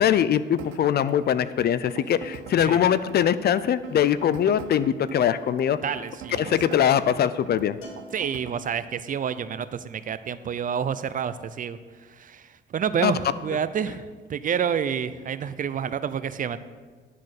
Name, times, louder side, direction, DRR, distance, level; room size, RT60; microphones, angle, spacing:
voice 1, 0.0-5.8 6.3-7.8 13.0-13.1, left 9 dB, 55° left, 15 dB, 0.4 m, -22 dB
sound 1, 0.6-8.6, right 10 dB, 85° right, 0.6 m, -43 dB
voice 2, 5.8-6.9 8.1-11.8 12.1-16.6, right 7 dB, 45° right, 14 dB, 0.4 m, -29 dB
Bell, 7.8-9.2, left 3 dB, 85° left, 2.1 m, -49 dB
11.0 x 4.2 x 6.5 m, 1.5 s
cardioid pair, 90°, 20 cm